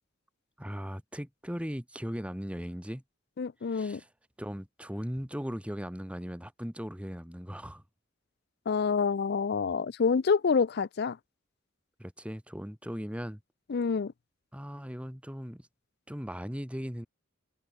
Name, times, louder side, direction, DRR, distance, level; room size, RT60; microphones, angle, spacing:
voice 1, 0.6-3.0 3.7-4.1 4.4-7.8 12.0-13.4 14.5-15.7 16.1-17.1, equal, 5° right, 3.2 m, -38 dB
voice 2, 3.4-4.0 8.7-11.2 13.7-14.1, left 5 dB, 50° left, 0.4 m, -27 dB
open air
head